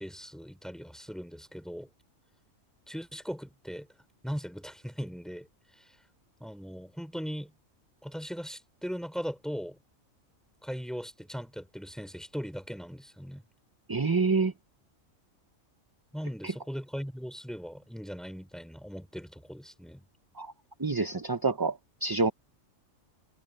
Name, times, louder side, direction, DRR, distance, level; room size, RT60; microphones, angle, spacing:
voice 1, 0.0-1.9 2.9-3.9 4.2-5.5 6.4-7.5 8.0-9.8 10.6-13.4 16.1-20.0, equal, ahead, 4.4 m, -39 dB
voice 2, 13.9-14.5 16.4-16.5 20.4-20.5 20.8-22.3, right 4 dB, 25° right, 0.6 m, -27 dB
omnidirectional pair, 1.4 m